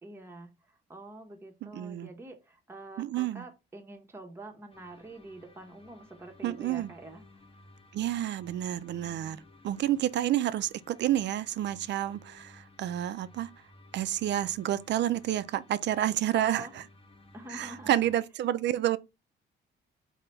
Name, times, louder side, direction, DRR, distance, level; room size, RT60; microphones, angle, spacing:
voice 1, 0.0-7.4 16.3-16.8 17.3-18.2, right 2 dB, 10° right, 0.8 m, -46 dB
voice 2, 1.6-2.1 3.0-3.4 6.4-6.9 7.9-13.5 13.9-16.8 17.5-19.0, right 12 dB, 60° right, 0.4 m, -29 dB
sound 1, 4.7-18.1, left 2 dB, 30° left, 0.9 m, -56 dB
3.9 x 2.2 x 4.4 m
cardioid pair, 90°, 20 cm